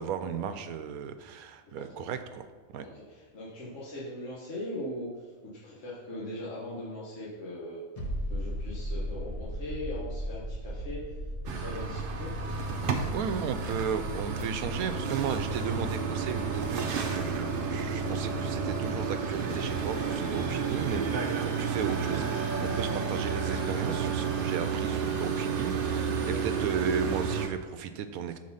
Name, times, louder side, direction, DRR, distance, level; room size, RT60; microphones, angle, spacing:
voice 1, 0.0-2.5 2.7-2.9 13.1-28.4, right 7 dB, 80° right, 9 dB, 1.0 m, -35 dB
voice 2, 2.9-7.8 8.3-11.2 11.4-13.0 25.4-25.5 26.0-26.6, left 1 dB, 60° left, -8 dB, 1.6 m, -40 dB
sound 1, 8.0-19.3 19.6-19.7, equal, 30° left, 1.0 m, -39 dB
sound 2, 11.4-27.5, right 5 dB, 55° right, 0.6 m, -31 dB
6.4 x 4.6 x 5.5 m, 1.4 s
omnidirectional pair, 1.5 m